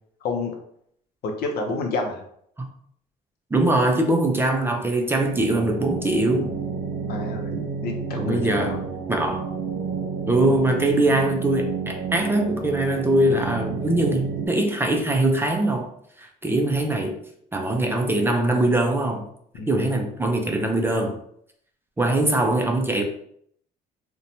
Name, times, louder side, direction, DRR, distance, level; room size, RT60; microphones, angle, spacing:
voice 1, 0.2-0.5 1.2-2.2 7.1-7.6 7.8-8.8 19.5-19.7, left 3 dB, 65° left, 3 dB, 0.6 m, -29 dB
voice 2, 3.5-6.5 8.2-8.8 9.1-9.5 10.3-15.9 16.2-17.2 17.5-19.3 19.7-21.2 22.0-23.0, right 1 dB, 15° right, 2 dB, 0.3 m, -22 dB
sound 1, 5.3-14.5, right 5 dB, 85° right, 0.7 m, -30 dB
2.7 x 2.1 x 2.6 m, 0.67 s
cardioid pair, 110°, 17 cm